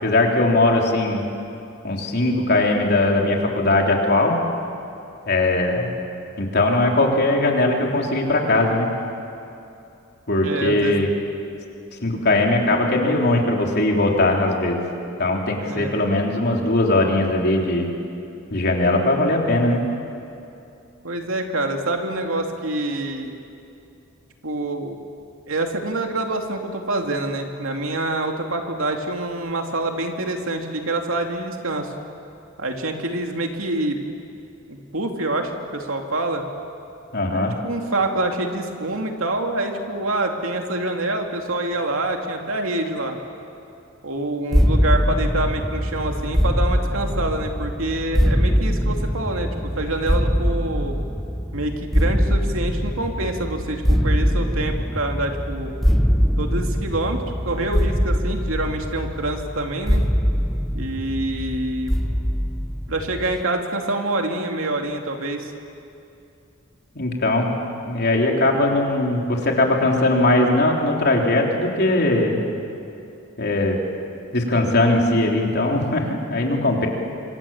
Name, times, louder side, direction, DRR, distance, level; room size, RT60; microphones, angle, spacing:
voice 1, 0.0-1.2 1.8-4.4 5.3-5.9 6.4-8.9 10.3-11.1 12.0-14.8 15.2-17.9 18.5-19.8 37.1-37.5 67.0-67.5 67.9-72.4 73.4-73.8 74.3-76.9, left 2 dB, 50° left, 0 dB, 3.6 m, -20 dB
voice 2, 10.4-10.9 15.6-15.9 21.0-23.3 24.4-25.0 25.5-31.9 32.6-34.0 34.7-36.4 37.2-43.2 44.0-51.0 51.5-55.7 56.4-60.1 60.7-61.9 62.9-65.5, right 2 dB, 75° right, 3 dB, 2.6 m, -26 dB
sound 1, 44.5-63.4, equal, ahead, 0.6 m, -22 dB
26.5 x 25.5 x 7.3 m, 2.7 s
head